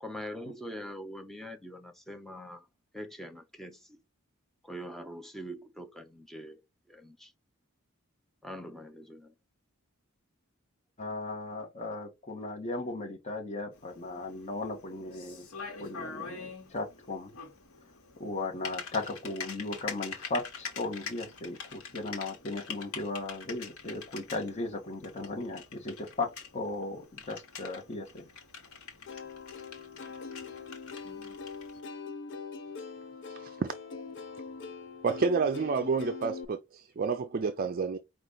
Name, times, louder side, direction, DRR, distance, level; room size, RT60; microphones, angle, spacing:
voice 1, 0.0-2.7 2.9-4.0 4.6-6.6 6.9-7.3 8.4-9.3, equal, ahead, 0.6 m, -43 dB
voice 2, 11.0-15.5 15.8-17.3 18.2-28.2, left 2 dB, 35° left, 1.2 m, -36 dB
Typing, 13.7-31.8, left 5 dB, 80° left, 1.2 m, -45 dB
Plucked string instrument, 29.1-36.4, left 4 dB, 60° left, 0.7 m, -42 dB
voice 3, 33.3-34.0 35.0-38.0, right 5 dB, 45° right, 0.4 m, -30 dB
4.9 x 2.4 x 3.9 m
head